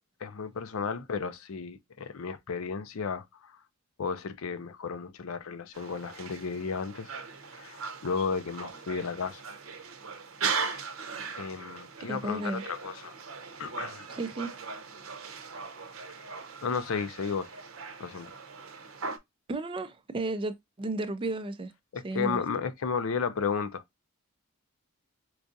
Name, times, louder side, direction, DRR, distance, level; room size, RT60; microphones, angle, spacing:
voice 1, 0.2-3.5 4.0-7.1 7.5-9.4 11.4-13.1 13.6-14.1 16.6-17.5 18.0-18.3 21.9-23.8, left 5 dB, 65° left, 0.5 m, -33 dB
sound 1, 5.7-19.2, right 5 dB, 70° right, 0.7 m, -39 dB
voice 2, 12.1-12.6 14.1-14.5 19.5-21.7 22.0-22.4, right 2 dB, 25° right, 0.3 m, -33 dB
4.6 x 2.5 x 2.5 m
head